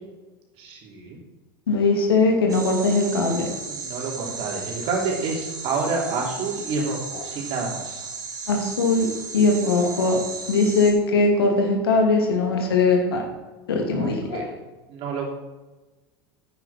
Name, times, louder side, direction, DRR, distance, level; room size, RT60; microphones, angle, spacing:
voice 1, 0.6-1.2 3.7-8.0 14.0-14.5 14.9-15.3, right 4 dB, 50° right, -1 dB, 3.6 m, -29 dB
voice 2, 1.7-3.5 7.1-7.3 8.5-9.1 9.3-10.2 10.5-13.2 13.7-14.5, left 3 dB, 80° left, 1 dB, 2.6 m, -20 dB
sound 1, 2.5-10.9, right 4 dB, 30° right, 3.0 m, -35 dB
10.5 x 9.1 x 4.4 m, 1.2 s
hypercardioid pair, 85°, 12 cm